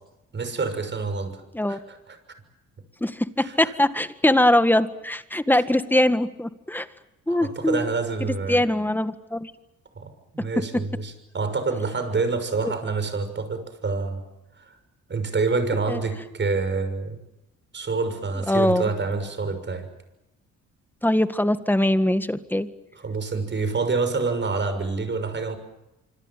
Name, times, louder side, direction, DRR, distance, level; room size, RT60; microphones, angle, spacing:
voice 1, 0.3-1.4 1.7-2.2 3.4-3.7 5.5-5.6 7.3-8.7 10.0-14.2 14.6-14.8 15.1-17.2 17.7-19.9 22.9-25.6, right 4 dB, 40° right, 9 dB, 6.4 m, -27 dB
voice 2, 3.0-6.9 7.3-7.9 8.5-9.5 12.6-12.7 15.9-16.0 18.5-18.9 21.0-22.7, left 1 dB, 5° left, 11 dB, 1.8 m, -22 dB
26.0 x 25.5 x 7.5 m, 0.95 s
cardioid pair, 90°, 30 cm